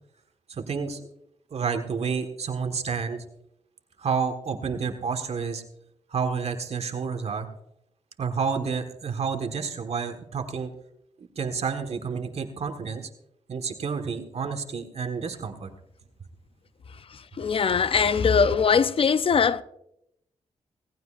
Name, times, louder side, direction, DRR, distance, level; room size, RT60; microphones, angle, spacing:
voice 1, 0.5-1.1 1.5-3.2 4.0-5.6 6.1-7.5 8.2-10.7 11.4-13.1 13.5-15.7, right 5 dB, 60° right, 1.6 m, -30 dB
voice 2, 17.1-19.6, left 6 dB, 50° left, 0.6 m, -21 dB
18.0 x 15.5 x 2.6 m
cardioid pair, 65°, 12 cm